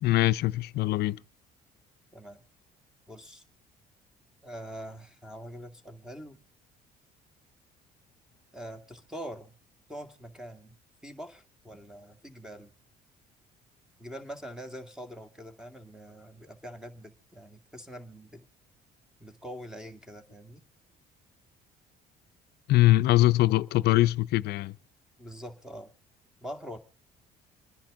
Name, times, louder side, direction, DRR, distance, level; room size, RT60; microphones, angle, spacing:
voice 1, 0.0-1.2 22.7-24.8, left 16 dB, 75° left, 0.6 m, -22 dB
voice 2, 2.1-2.4 3.1-3.4 4.4-6.4 8.5-9.6 9.9-10.8 11.0-12.7 14.0-18.5 19.2-20.6 25.2-25.9 26.4-26.8, equal, 5° right, 2.1 m, -44 dB
26.5 x 10.5 x 3.7 m
cardioid pair, 110°, 17 cm